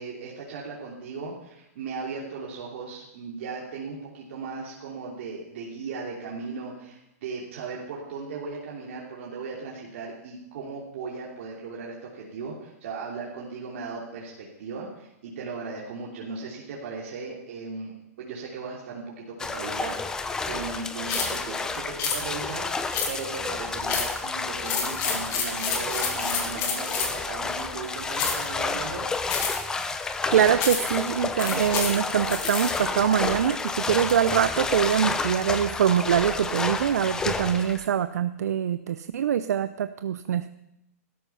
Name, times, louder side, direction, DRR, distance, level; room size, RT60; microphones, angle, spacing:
voice 1, 0.0-14.3 14.6-29.0, right 4 dB, 50° right, -3 dB, 3.0 m, -37 dB
sound 1, 19.4-37.9, left 4 dB, 10° left, 0.7 m, -30 dB
sound 2, 21.1-21.4 22.0-22.2 22.9-23.4 23.9-24.2 24.6-27.2 28.2-28.5 29.3-29.7 30.6-31.0 31.4-32.8, left 6 dB, 30° left, 2.6 m, -29 dB
voice 2, 30.3-40.5, right 9 dB, 80° right, 12 dB, 0.6 m, -24 dB
16.0 x 13.0 x 5.6 m, 0.85 s
hypercardioid pair, 165°, 8 cm